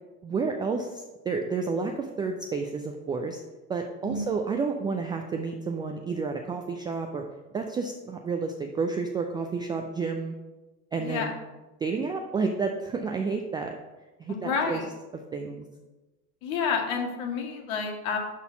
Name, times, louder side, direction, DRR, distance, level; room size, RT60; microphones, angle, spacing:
voice 1, 0.2-3.4 3.7-7.2 7.5-10.3 10.9-11.3 11.8-13.8 14.2-14.8 15.3-15.7, right 4 dB, 10° right, 3 dB, 0.3 m, -30 dB
voice 2, 11.0-11.3 14.3-14.9 16.4-18.2, left 5 dB, 50° left, 2 dB, 2.0 m, -29 dB
11.0 x 4.1 x 5.6 m, 1.1 s
figure-of-eight pair, 70°, 47 cm